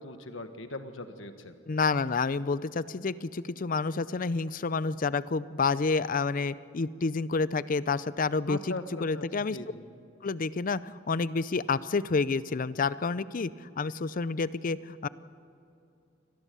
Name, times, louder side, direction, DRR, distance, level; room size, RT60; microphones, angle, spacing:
voice 1, 0.0-1.6 8.5-9.2 9.5-9.8, left 2 dB, 90° left, 8 dB, 1.5 m, -39 dB
voice 2, 1.7-8.7 9.0-9.6 10.2-15.1, left 4 dB, 45° left, 17 dB, 0.5 m, -29 dB
25.0 x 18.5 x 6.9 m, 2.5 s
head